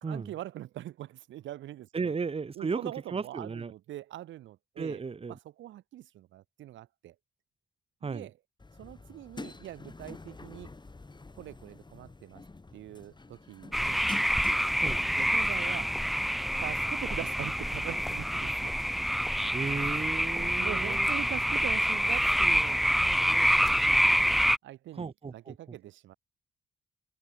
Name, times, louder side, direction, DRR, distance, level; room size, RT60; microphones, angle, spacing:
voice 1, 0.0-2.1 2.5-5.0 5.3-7.1 8.0-8.3 8.8-10.7 11.4-12.4 12.7-14.1 15.1-16.0 16.6-18.7 20.3-24.0 24.6-26.1, right 14 dB, 85° right, 3.0 m, -43 dB
voice 2, 1.9-3.7 4.8-5.4 8.0-8.3 14.8-15.0 19.5-21.1 24.9-25.8, right 5 dB, 30° right, 1.3 m, -35 dB
sound 1, 8.6-23.4, left 3 dB, 25° left, 6.7 m, -50 dB
sound 2, 13.7-24.6, equal, ahead, 0.5 m, -27 dB
cardioid pair, 75°, 19 cm